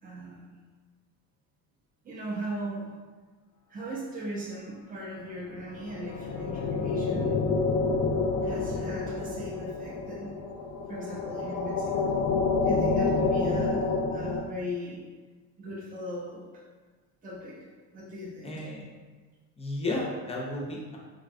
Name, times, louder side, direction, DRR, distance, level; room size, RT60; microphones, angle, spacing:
voice 1, 0.0-0.6 2.0-2.9 3.7-7.4 8.4-10.4 10.9-12.2 12.6-15.0 15.6-16.4 17.2-17.7 17.9-18.7, equal, 25° right, -4 dB, 0.6 m, -38 dB
sound 1, 5.5-14.4, left 4 dB, 75° left, 0.5 m, -28 dB
voice 2, 18.4-18.9 19.6-21.0, left 2 dB, 15° left, -2 dB, 0.6 m, -33 dB
3.7 x 2.2 x 2.5 m, 1.4 s
cardioid pair, 115°, 36 cm